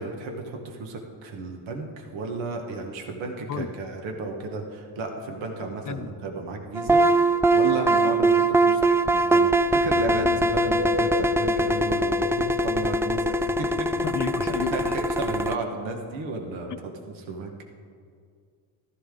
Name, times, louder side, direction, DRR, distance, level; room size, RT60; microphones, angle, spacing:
voice 1, 0.0-9.5 9.8-13.9 14.2-16.7 17.1-17.5, right 3 dB, 90° right, 2 dB, 1.6 m, -33 dB
sound 1, 6.8-15.5, right 1 dB, 5° right, 0.3 m, -22 dB
Bowed string instrument, 9.7-13.2, right 5 dB, 70° right, 2.4 m, -46 dB
sound 2, 10.3-14.9, right 1 dB, 40° right, 1.2 m, -35 dB
voice 2, 14.0-15.0, left 7 dB, 40° left, 10 dB, 0.8 m, -31 dB
14.5 x 13.0 x 3.8 m, 2.2 s
cardioid pair, 85°, 46 cm